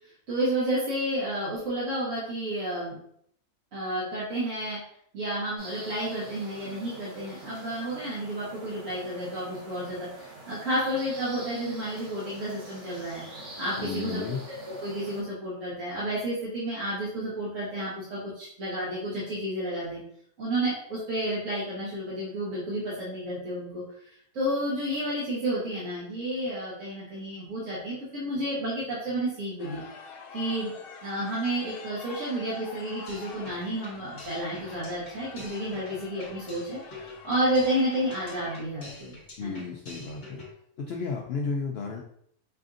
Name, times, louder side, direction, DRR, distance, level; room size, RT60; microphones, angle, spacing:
voice 1, 0.3-3.0 3.7-4.8 5.1-14.2 14.6-20.0 20.4-23.8 24.3-29.8 30.3-30.7 31.0-39.6, right 1 dB, 60° right, -9 dB, 1.5 m, -31 dB
sound 1, 5.6-15.2, right 1 dB, 85° right, 2.3 m, -45 dB
voice 2, 13.8-14.4 39.4-40.4 40.8-42.0, left 5 dB, 70° left, 0 dB, 0.6 m, -33 dB
sound 2, 29.6-38.6, left 5 dB, 90° left, 1.2 m, -46 dB
sound 3, 33.1-40.5, left 2 dB, 40° left, 1.3 m, -47 dB
5.6 x 2.5 x 2.5 m, 0.68 s
omnidirectional pair, 1.6 m